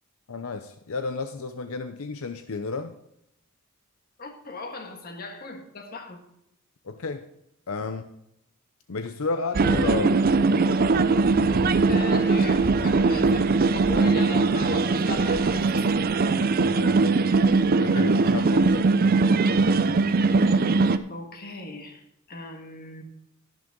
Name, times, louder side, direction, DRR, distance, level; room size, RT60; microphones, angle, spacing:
voice 1, 0.3-3.0 6.8-7.3 7.7-8.0 8.9-10.3 16.6-17.0 17.8-18.8, left 4 dB, 75° left, 8 dB, 0.7 m, -32 dB
voice 2, 4.2-6.3 11.9-15.8 21.1-23.0, left 3 dB, 45° left, 4 dB, 1.7 m, -38 dB
sound 1, 9.5-21.0, right 3 dB, 45° right, 0.5 m, -21 dB
11.5 x 10.5 x 3.8 m, 0.78 s
head